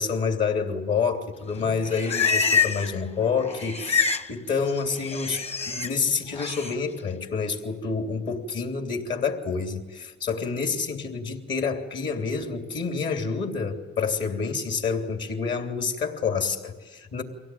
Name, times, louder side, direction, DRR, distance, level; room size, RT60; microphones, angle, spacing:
voice 1, 0.0-17.2, left 5 dB, 65° left, 4 dB, 3.2 m, -28 dB
Livestock farm animals working animals, 1.6-3.0 3.2-4.3 4.6-5.9 6.3-6.7, left 5 dB, 30° left, 1.1 m, -26 dB
24.0 x 17.0 x 9.4 m, 1.3 s
cardioid pair, 90°, 20 cm